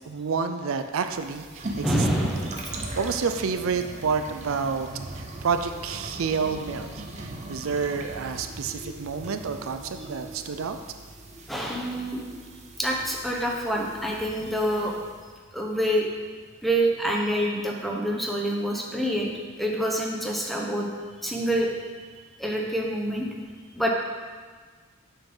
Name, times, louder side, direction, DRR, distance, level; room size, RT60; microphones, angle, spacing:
voice 1, 0.0-2.1 3.0-4.9 5.1-10.8, right 5 dB, 70° right, 8 dB, 0.4 m, -29 dB
sound 1, 1.0-15.3, right 2 dB, 35° right, 0.8 m, -40 dB
voice 2, 1.8-2.8 11.5-12.2 12.8-15.0 15.5-16.1 16.6-20.9 21.2-21.7 22.0-22.1 22.4-23.3 23.7-23.9, right 1 dB, ahead, -1 dB, 0.9 m, -26 dB
7.2 x 5.6 x 5.4 m, 1.5 s
head